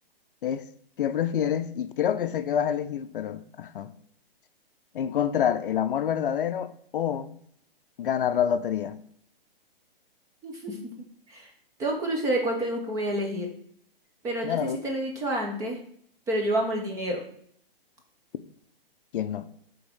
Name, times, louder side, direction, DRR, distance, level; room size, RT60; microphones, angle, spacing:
voice 1, 1.0-3.9 4.9-7.4 8.0-9.0 14.4-14.8 19.1-19.5, left 9 dB, 60° left, 0.5 m, -27 dB
voice 2, 10.4-10.9 11.3-11.5 11.8-13.5 14.2-15.8 16.3-17.2, right 1 dB, 10° right, 0.7 m, -29 dB
8.5 x 3.6 x 3.5 m
hypercardioid pair, 150°, 30 cm